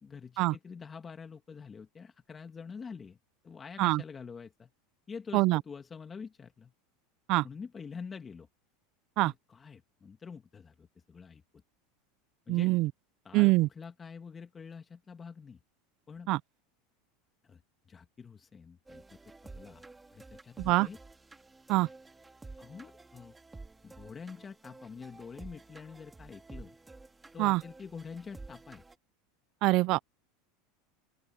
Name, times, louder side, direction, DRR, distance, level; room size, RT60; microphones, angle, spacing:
voice 1, 0.0-3.2 3.4-4.7 5.1-6.7 7.4-8.5 9.2-11.4 12.5-12.7 13.2-15.6 16.1-16.3 17.4-17.6 17.9-19.2 19.4-19.8 20.1-21.0 21.7-21.9 22.6-23.4 23.8-26.8 27.3-28.8, left 5 dB, 20° left, 2.0 m, -46 dB
voice 2, 12.5-12.9 13.3-13.7 16.3-16.4 20.6-20.9 21.7-21.9 27.4-27.6 29.6-30.0, right 21 dB, 55° right, 0.5 m, -24 dB
sound 1, 18.9-29.0, right 3 dB, 10° right, 2.6 m, -51 dB
open air
supercardioid pair, 120°, 0 cm